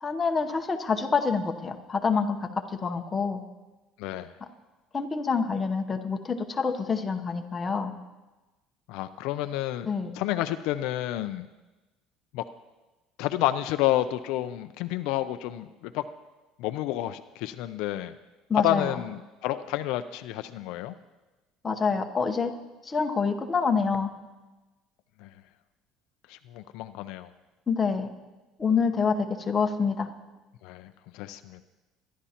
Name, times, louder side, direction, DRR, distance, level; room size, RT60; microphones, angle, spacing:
voice 1, 0.0-2.5 2.8-3.4 4.9-7.9 9.9-10.1 18.5-18.9 21.6-22.5 22.8-24.1 27.7-28.1 28.6-30.1, left 5 dB, 20° left, 5 dB, 0.9 m, -26 dB
voice 2, 4.0-4.3 8.9-9.9 10.1-11.5 12.3-12.4 13.2-16.0 16.6-18.2 18.6-20.9 25.2-25.3 26.3-27.3 30.6-31.6, left 14 dB, 75° left, 10 dB, 0.4 m, -30 dB
23.5 x 11.0 x 2.9 m, 1.1 s
cardioid pair, 150°, 0 cm